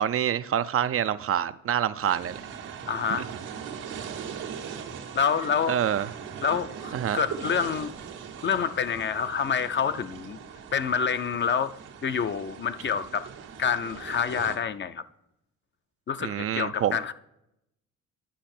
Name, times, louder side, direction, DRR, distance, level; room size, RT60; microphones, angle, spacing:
voice 1, 0.0-2.4 3.2-3.3 5.7-6.1 6.9-7.2 16.2-17.0, right 10 dB, 50° right, 0.4 m, -26 dB
sound 1, 2.0-14.6, right 7 dB, 90° right, 1.5 m, -40 dB
voice 2, 2.9-3.3 5.2-5.8 6.4-7.9 8.4-10.4 10.7-11.7 12.0-13.3 13.6-15.0 16.1-17.1, left 7 dB, 40° left, 0.5 m, -27 dB
10.0 x 5.8 x 4.3 m
cardioid pair, 90°, 30 cm